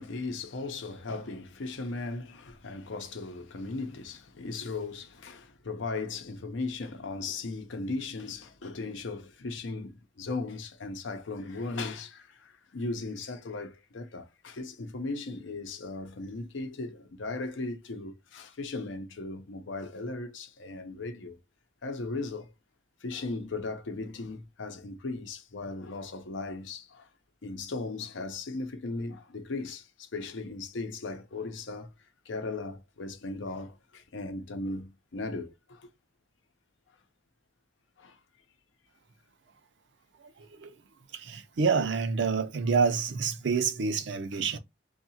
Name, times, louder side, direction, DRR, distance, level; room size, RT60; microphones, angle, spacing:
voice 1, 0.0-21.4 21.8-22.5 23.0-27.1 27.4-31.9 32.3-35.9 38.0-38.2, left 3 dB, 90° left, 0.7 m, -37 dB
voice 2, 40.2-40.7 41.1-44.6, right 5 dB, 70° right, 0.4 m, -28 dB
2.8 x 2.3 x 2.7 m
head